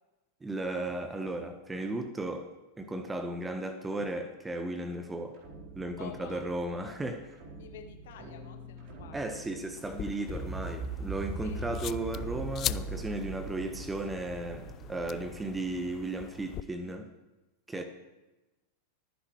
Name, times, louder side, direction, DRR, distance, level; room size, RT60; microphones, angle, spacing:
voice 1, 0.4-2.5 2.8-5.4 5.7-7.2 9.1-17.1 17.7-17.8, right 2 dB, 10° right, 1.3 m, -35 dB
sound 1, 5.3-16.6, right 3 dB, 40° right, 4.2 m, -42 dB
voice 2, 6.0-6.5 6.8-7.0 7.6-9.5 11.4-11.7 17.7-17.8, left 8 dB, 55° left, 1.8 m, -49 dB
sound 2, 9.8-16.6, left 13 dB, 35° left, 0.3 m, -41 dB
25.0 x 10.0 x 3.2 m
figure-of-eight pair, 90°, 0 cm